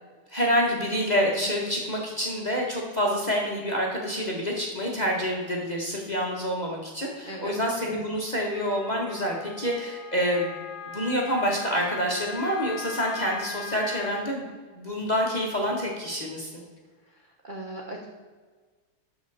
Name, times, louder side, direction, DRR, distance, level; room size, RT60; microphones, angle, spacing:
voice 1, 0.3-10.6 10.9-14.5 14.7-16.6, equal, 25° left, -2 dB, 1.2 m, -27 dB
Wind instrument woodwind instrument, 8.5-14.2, left 7 dB, 70° left, 1.0 m, -40 dB
voice 2, 17.4-18.1, right 1 dB, 35° right, -2 dB, 0.9 m, -37 dB
12.5 x 6.0 x 4.1 m, 1.4 s
omnidirectional pair, 2.4 m